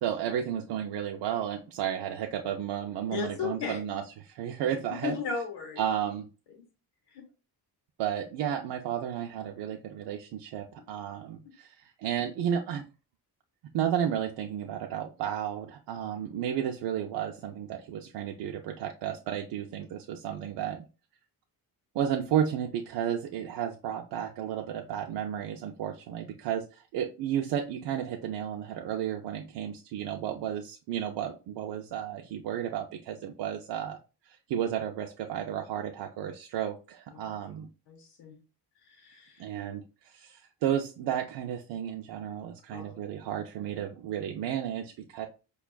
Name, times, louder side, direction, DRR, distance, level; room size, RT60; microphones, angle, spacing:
voice 1, 0.0-5.2 5.8-6.3 8.0-12.9 13.7-20.9 21.9-34.0 34.2-37.7 39.4-45.3, right 9 dB, 85° right, 2 dB, 0.5 m, -33 dB
voice 2, 3.1-3.8 5.0-5.8 6.5-6.6 7.1-7.2 37.1-37.3 37.9-38.4 38.8-39.5 42.7-42.8, left 6 dB, 75° left, 2 dB, 1.0 m, -36 dB
5.2 x 2.3 x 2.2 m, 0.33 s
wide cardioid pair, 135°, 41 cm